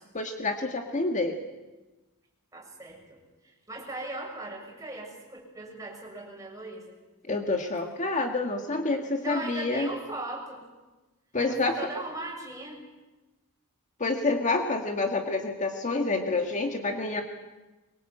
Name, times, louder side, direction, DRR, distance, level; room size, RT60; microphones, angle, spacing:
voice 1, 0.1-1.4 7.3-9.9 11.3-11.7 14.0-17.2, left 3 dB, 35° left, 4 dB, 1.9 m, -28 dB
voice 2, 2.5-7.0 9.2-10.7 11.5-12.8, right 2 dB, 15° right, -1 dB, 7.0 m, -39 dB
24.0 x 22.5 x 8.8 m, 1.1 s
head